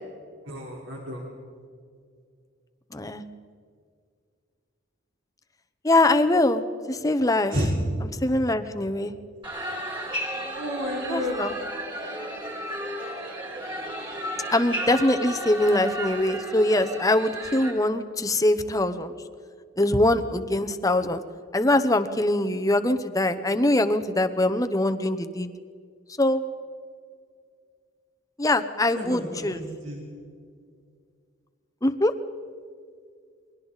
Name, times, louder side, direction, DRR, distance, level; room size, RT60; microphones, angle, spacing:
voice 1, 0.5-1.2 7.5-7.7 10.6-11.4 29.0-30.0, equal, 75° right, -2 dB, 3.9 m, -31 dB
voice 2, 5.8-7.5 8.2-9.1 11.1-11.5 14.5-19.1 19.8-21.2 21.5-25.5 26.2-26.4 28.4-29.6 31.8-32.1, left 1 dB, 15° left, 8 dB, 0.9 m, -23 dB
sound 1, 9.4-17.7, right 1 dB, 25° right, 4.0 m, -33 dB
29.5 x 22.5 x 4.1 m, 2.2 s
head